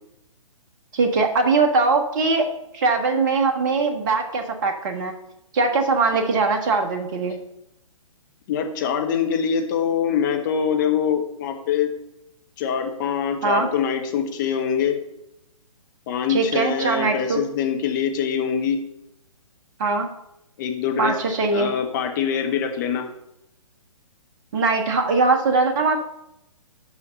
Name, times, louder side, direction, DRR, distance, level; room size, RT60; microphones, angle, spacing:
voice 1, 0.9-2.5 2.7-5.1 5.5-7.4 13.4-13.7 16.3-17.4 19.8-20.1 21.0-21.7 24.5-26.1, right 3 dB, 35° right, 4 dB, 1.1 m, -21 dB
voice 2, 8.5-11.9 12.6-15.0 16.1-18.8 20.6-21.1 21.5-23.1, left 7 dB, 35° left, 4 dB, 1.2 m, -24 dB
6.2 x 5.6 x 6.4 m, 0.83 s
figure-of-eight pair, 125°, 18 cm